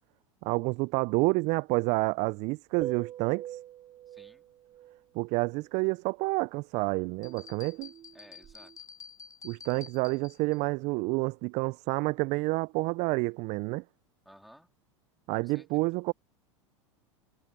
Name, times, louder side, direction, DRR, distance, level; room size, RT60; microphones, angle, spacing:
voice 1, 0.4-3.6 5.1-7.9 9.4-13.8 15.3-16.1, right 26 dB, 45° right, 0.4 m, -29 dB
sound 1, 2.8-5.0 7.2-8.8, right 12 dB, 30° right, 1.2 m, -43 dB
voice 2, 4.1-4.5 7.6-8.7 14.3-14.7 15.4-15.8, equal, ahead, 3.6 m, -57 dB
sound 2, 7.2-10.6, left 6 dB, 20° left, 1.0 m, -50 dB
hypercardioid pair, 95°, 16 cm